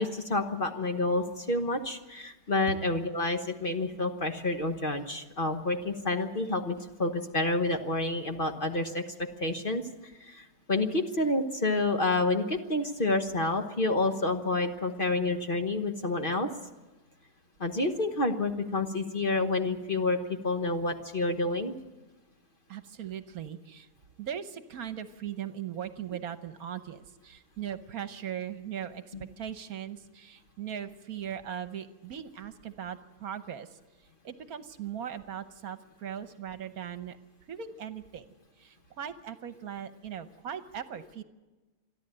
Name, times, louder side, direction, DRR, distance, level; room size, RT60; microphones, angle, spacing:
voice 1, 0.0-9.8 10.2-16.5 17.6-21.8 29.1-29.2, left 2 dB, 35° left, 5 dB, 1.2 m, -29 dB
voice 2, 22.7-23.9 24.2-33.8 34.2-37.2 37.5-38.2 38.6-41.2, right 9 dB, 65° right, 11 dB, 1.4 m, -39 dB
27.5 x 11.0 x 8.9 m, 1.2 s
omnidirectional pair, 1.7 m